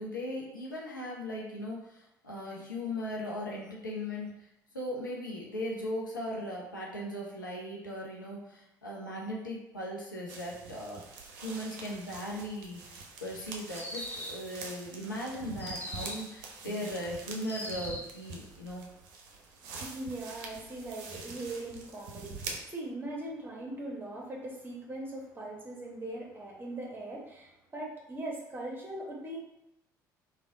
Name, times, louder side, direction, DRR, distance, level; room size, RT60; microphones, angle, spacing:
voice 1, 0.0-4.5 4.7-11.1 11.4-18.9, left 1 dB, 85° left, -3 dB, 0.6 m, -38 dB
sound 1, 10.3-22.6, right 4 dB, 60° right, 0.6 m, -45 dB
sound 2, 13.7-14.5 15.6-16.3 17.4-18.2, left 1 dB, 20° left, 0.7 m, -40 dB
voice 2, 18.9-29.4, right 1 dB, 20° right, -2 dB, 1.1 m, -41 dB
3.3 x 2.3 x 3.6 m, 0.89 s
figure-of-eight pair, 55°, 10 cm